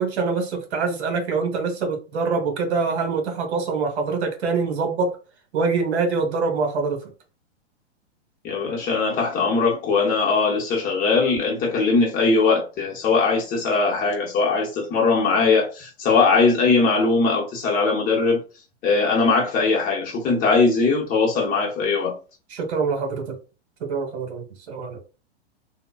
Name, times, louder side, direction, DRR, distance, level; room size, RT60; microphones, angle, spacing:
voice 1, 0.0-5.1 5.5-7.0 22.5-23.3 23.8-25.0, right 4 dB, 65° right, 1.1 m, -24 dB
voice 2, 8.4-18.4 18.8-22.1, left 4 dB, 25° left, 0.8 m, -20 dB
3.7 x 2.1 x 2.3 m
hypercardioid pair, 125°, 35 cm